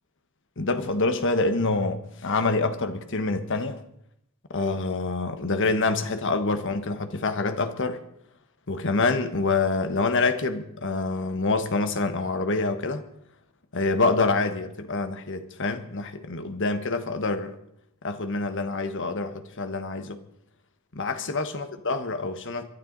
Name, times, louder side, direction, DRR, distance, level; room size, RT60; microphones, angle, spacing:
voice 1, 0.6-3.8 4.5-8.0 8.7-13.0 13.7-17.6 18.0-20.2 20.9-22.7, left 3 dB, 55° left, 1.4 m, -26 dB
23.5 x 12.5 x 4.1 m
head